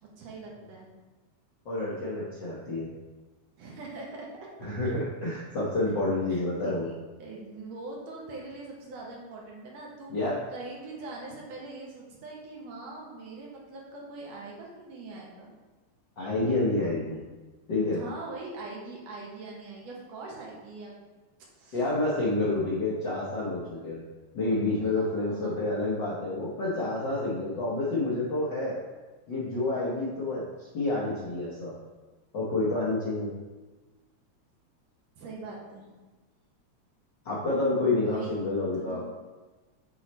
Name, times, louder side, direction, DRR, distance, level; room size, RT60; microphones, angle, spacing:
voice 1, 0.0-0.9 3.6-5.0 5.8-6.0 6.3-6.9 7.2-15.5 17.9-20.9 21.6-21.8 24.8-25.6 35.2-35.9 38.1-39.0, right 3 dB, 65° right, -3 dB, 2.1 m, -42 dB
voice 2, 1.6-2.9 4.6-6.9 10.1-10.4 16.2-17.2 17.7-18.0 21.7-24.0 24.3-28.7 29.3-30.4 30.7-31.7 32.3-33.3 37.2-39.0, left 2 dB, 60° left, -7 dB, 1.1 m, -28 dB
8.0 x 3.1 x 4.2 m, 1.2 s
omnidirectional pair, 3.4 m